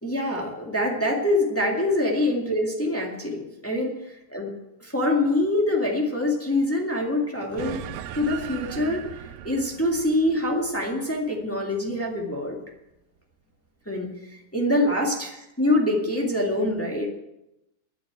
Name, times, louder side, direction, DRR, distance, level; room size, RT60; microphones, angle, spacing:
voice 1, 0.0-3.9 4.3-4.5 4.8-7.8 8.1-9.1 9.4-12.6 13.8-15.3 15.6-17.1, left 1 dB, 10° left, -1 dB, 0.6 m, -25 dB
sound 1, 7.6-12.3, right 10 dB, 80° right, 2.4 m, -39 dB
12.5 x 8.4 x 9.0 m, 0.90 s
omnidirectional pair, 4.1 m